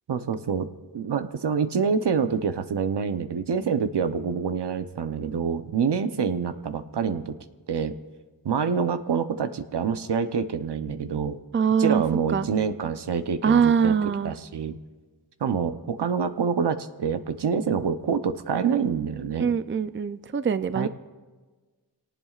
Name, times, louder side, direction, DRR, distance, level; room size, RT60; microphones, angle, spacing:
voice 1, 0.1-0.7 0.9-7.4 7.7-8.0 8.4-11.4 11.8-14.8 15.4-19.5 20.7-20.9, right 6 dB, 75° right, 9 dB, 0.9 m, -26 dB
voice 2, 11.5-12.0 12.3-12.5 13.4-14.3 19.4-20.9, right 6 dB, 30° right, 12 dB, 0.5 m, -23 dB
25.5 x 18.0 x 2.5 m, 1.3 s
wide cardioid pair, 75°, 41 cm